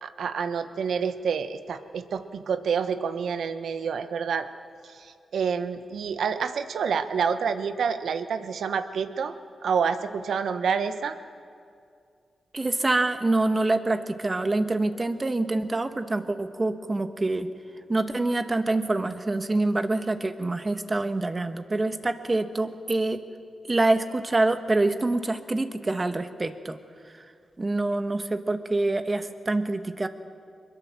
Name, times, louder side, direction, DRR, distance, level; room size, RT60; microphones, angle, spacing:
voice 1, 0.0-4.5 4.8-9.3 9.6-11.2, right 6 dB, 75° right, 9 dB, 1.2 m, -28 dB
voice 2, 12.5-17.5 17.9-23.2 23.7-26.8 27.1-27.3 27.6-30.1, right 2 dB, 30° right, 8 dB, 1.6 m, -26 dB
23.0 x 21.0 x 7.5 m, 2.3 s
cardioid pair, 55°, 0 cm